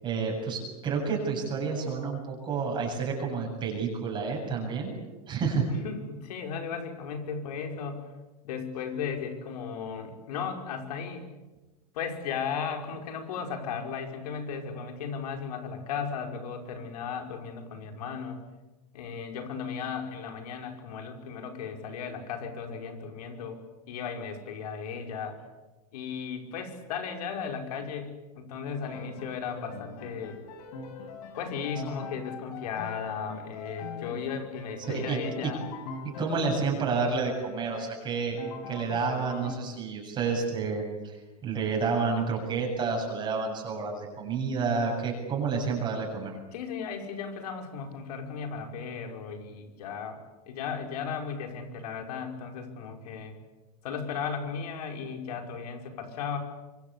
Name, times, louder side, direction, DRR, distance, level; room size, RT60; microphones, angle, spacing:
voice 1, 0.0-4.9 5.3-5.7 34.9-35.5 36.2-38.4 38.7-46.4, right 5 dB, 25° right, 0 dB, 7.5 m, -30 dB
voice 2, 5.8-8.1 8.4-11.3 11.9-18.4 18.9-23.6 23.9-25.4 25.9-30.4 31.4-35.6 36.3-36.5 46.5-50.2 50.5-53.4 53.8-56.4, left 6 dB, 80° left, 4 dB, 5.5 m, -36 dB
Piano, 28.8-36.9 37.2-39.5, left 5 dB, 65° left, 6.0 m, -42 dB
25.5 x 25.0 x 8.4 m, 1.1 s
supercardioid pair, 160°, 20 cm